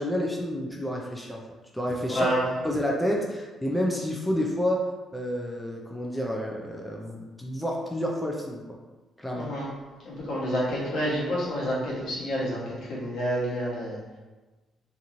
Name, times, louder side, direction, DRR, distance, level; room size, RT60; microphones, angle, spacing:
voice 1, 0.0-1.4 1.7-2.3 2.6-4.9 5.1-8.8 9.2-9.5, equal, 5° left, -2 dB, 0.4 m, -29 dB
voice 2, 2.1-2.5 9.3-9.7 10.0-14.0, equal, 70° left, -6 dB, 1.1 m, -28 dB
2.9 x 2.6 x 2.5 m, 1.2 s
cardioid pair, 90°, 0 cm